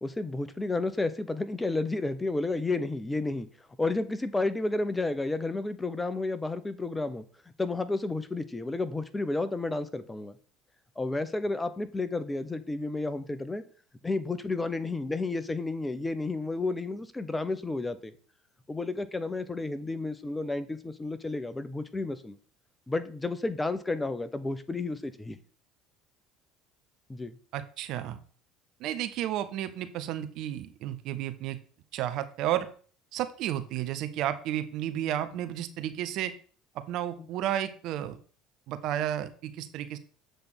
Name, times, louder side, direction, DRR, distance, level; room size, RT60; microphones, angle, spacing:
voice 1, 0.0-3.5 3.8-7.2 7.6-10.3 11.0-13.6 14.0-18.1 18.7-22.3 22.9-25.4 27.1-27.4, left 2 dB, 15° left, 12 dB, 0.8 m, -31 dB
voice 2, 27.5-28.2 28.8-31.6 31.9-32.7 33.1-36.3 36.7-38.2 38.7-40.0, right 12 dB, 55° right, 10 dB, 0.7 m, -32 dB
7.7 x 3.4 x 6.0 m, 0.43 s
figure-of-eight pair, 60°, 0 cm